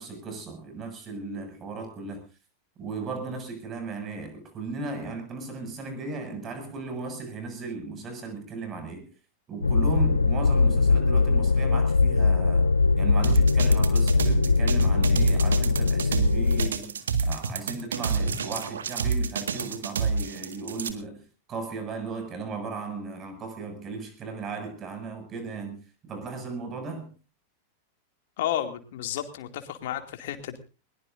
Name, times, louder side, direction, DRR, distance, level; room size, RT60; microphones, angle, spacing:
voice 1, 0.0-2.2 2.8-9.1 9.5-12.7 13.0-21.2 21.5-27.1, right 4 dB, 30° right, 6.9 m, -36 dB
sound 1, 9.6-16.7, left 4 dB, 80° left, 0.8 m, -21 dB
sound 2, 13.2-20.9, right 5 dB, 65° right, 1.8 m, -28 dB
voice 2, 28.4-30.6, left 11 dB, 55° left, 2.5 m, -32 dB
21.0 x 21.0 x 2.7 m
figure-of-eight pair, 90°, 0 cm